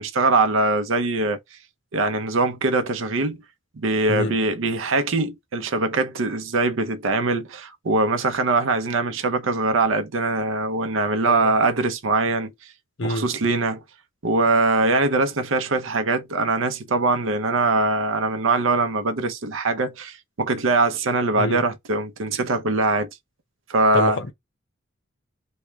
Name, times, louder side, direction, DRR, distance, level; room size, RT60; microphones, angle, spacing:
voice 1, 0.0-1.4 1.9-3.4 3.8-12.5 13.0-13.8 14.2-23.1 23.7-24.2, right 3 dB, 90° right, 0.6 m, -22 dB
voice 2, 13.0-13.3 21.4-21.6 23.9-24.3, left 1 dB, 70° left, 0.8 m, -26 dB
3.1 x 2.3 x 3.4 m
head